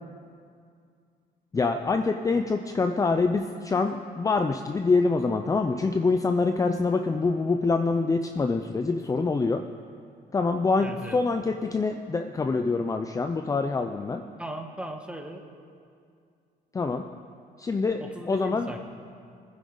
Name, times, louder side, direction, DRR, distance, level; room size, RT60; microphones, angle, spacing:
voice 1, 1.5-9.6 10.3-14.2 16.7-17.1 17.6-18.0 18.3-18.7, left 4 dB, 20° left, 6 dB, 0.6 m, -25 dB
voice 2, 10.8-11.2 14.4-15.4 18.0-18.8, right 1 dB, 5° right, 4 dB, 1.5 m, -37 dB
22.5 x 10.0 x 4.0 m, 2.3 s
cardioid pair, 110°, 17 cm